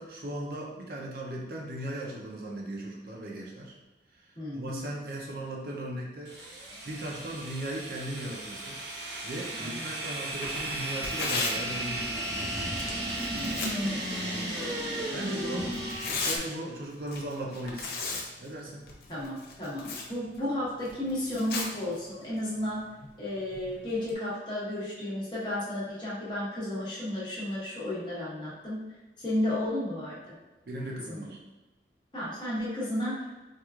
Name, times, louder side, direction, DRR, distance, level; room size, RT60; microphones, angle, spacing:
voice 1, 0.0-3.7 4.5-6.3 6.9-8.8 9.2-12.6 14.1-14.5 15.1-15.7 16.2-18.0 18.4-18.9 30.7-31.4, right 1 dB, 55° right, -2 dB, 0.5 m, -37 dB
voice 2, 4.4-4.9 9.5-9.8 13.3-14.0 19.1-22.9 23.2-28.8 29.2-30.3 31.1-31.3 32.1-33.3, left 1 dB, 25° left, -8 dB, 1.0 m, -33 dB
sound 1, 6.3-16.4, right 1 dB, 85° right, 0.8 m, -34 dB
Tearing, 10.3-24.1, left 3 dB, 60° left, 0.5 m, -39 dB
4.4 x 2.4 x 2.3 m, 1.2 s
head